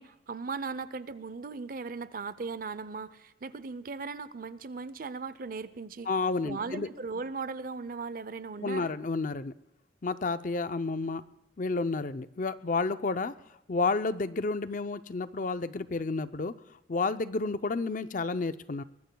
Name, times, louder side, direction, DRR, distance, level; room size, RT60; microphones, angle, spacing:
voice 1, 0.0-6.1 6.4-8.9, right 4 dB, 45° right, 15 dB, 0.6 m, -38 dB
voice 2, 6.1-6.9 8.6-9.5 10.0-11.2 11.6-13.3 13.7-16.5 16.9-18.8, left 3 dB, 45° left, 12 dB, 0.5 m, -30 dB
23.0 x 20.5 x 2.3 m, 0.86 s
head